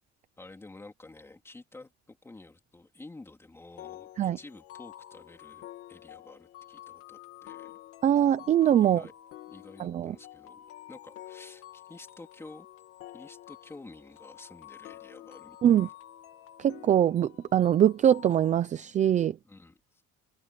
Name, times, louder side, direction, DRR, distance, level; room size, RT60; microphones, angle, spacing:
voice 1, 0.4-7.8 8.8-9.1 9.5-10.6 10.9-12.7 13.1-15.9 19.4-20.0, left 2 dB, 10° left, 3.5 m, -50 dB
sound 1, 3.8-18.6, left 14 dB, 50° left, 2.1 m, -49 dB
voice 2, 8.0-9.0 9.8-10.2 15.6-15.9 16.6-19.4, right 10 dB, 25° right, 0.6 m, -23 dB
cardioid pair, 180°, 29 cm